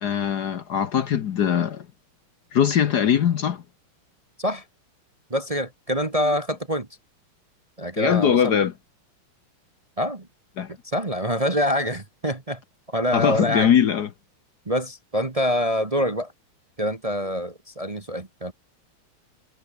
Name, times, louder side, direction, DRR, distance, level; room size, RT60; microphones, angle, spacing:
voice 1, 0.0-1.9 2.5-3.6 8.0-8.7 10.6-10.7 13.1-14.1, left 8 dB, 55° left, 1.4 m, -21 dB
voice 2, 5.3-6.9 7.8-8.6 10.0-10.3 10.8-12.6 12.9-13.7 14.7-16.3 16.8-18.5, equal, 20° right, 1.2 m, -25 dB
omnidirectional pair, 2.3 m